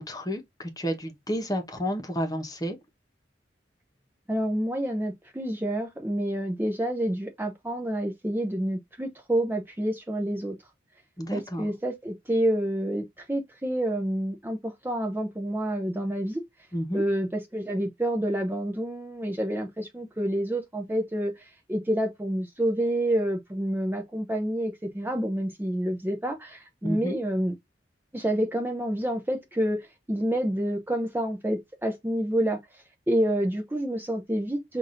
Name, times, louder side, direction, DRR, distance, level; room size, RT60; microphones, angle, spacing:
voice 1, 0.0-2.8 11.2-11.7 16.7-17.0 26.8-27.2, equal, 20° left, 1.0 m, -31 dB
voice 2, 4.3-10.6 11.3-16.4 16.9-27.5 28.1-34.8, right 1 dB, 10° right, 0.6 m, -28 dB
5.9 x 2.6 x 2.5 m
head